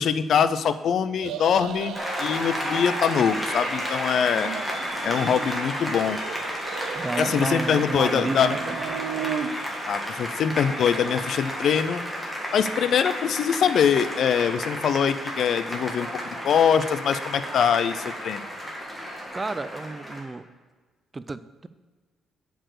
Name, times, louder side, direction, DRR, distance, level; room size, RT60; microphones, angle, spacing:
voice 1, 0.0-4.5 5.0-6.2 7.2-8.6 9.9-12.0 12.5-16.1 16.4-18.4, left 7 dB, 65° left, 13 dB, 0.4 m, -23 dB
sound 1, 1.2-2.8 3.1-4.0 4.3-5.6 6.0-7.6 7.9-9.5, right 8 dB, 85° right, 0.5 m, -36 dB
Applause, 1.9-20.2, equal, 5° left, 1.7 m, -32 dB
voice 2, 6.9-8.8 19.3-20.5 21.1-21.7, right 3 dB, 25° right, 14 dB, 0.3 m, -32 dB
7.6 x 4.7 x 6.5 m, 1.4 s
cardioid pair, 90°, 0 cm